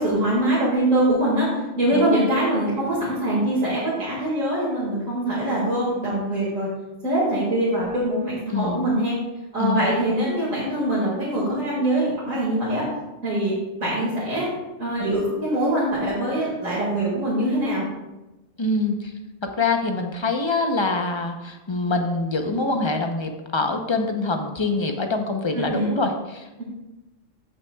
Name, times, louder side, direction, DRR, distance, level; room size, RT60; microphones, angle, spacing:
voice 1, 0.0-6.7 7.0-9.2 9.5-12.8 13.2-14.5 14.8-17.8 25.5-25.9, right 1 dB, 75° right, -7 dB, 2.4 m, -23 dB
voice 2, 1.9-2.3 8.5-8.8 9.6-9.9 18.6-19.1 19.6-26.6, left 3 dB, 30° left, 4 dB, 0.6 m, -25 dB
14.5 x 5.8 x 2.3 m, 1.0 s
omnidirectional pair, 1.4 m